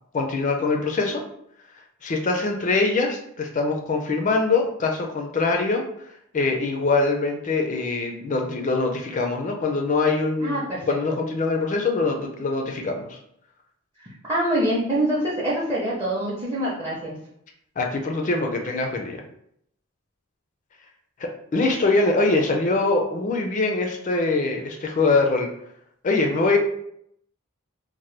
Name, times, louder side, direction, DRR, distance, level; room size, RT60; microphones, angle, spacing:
voice 1, 0.1-1.2 2.0-5.8 6.3-13.2 17.8-19.2 21.2-25.5 26.0-26.6, left 3 dB, 35° left, 3 dB, 0.4 m, -23 dB
voice 2, 10.4-10.9 14.0-17.2, right 1 dB, 20° right, -7 dB, 0.6 m, -25 dB
2.8 x 2.1 x 3.2 m, 0.72 s
head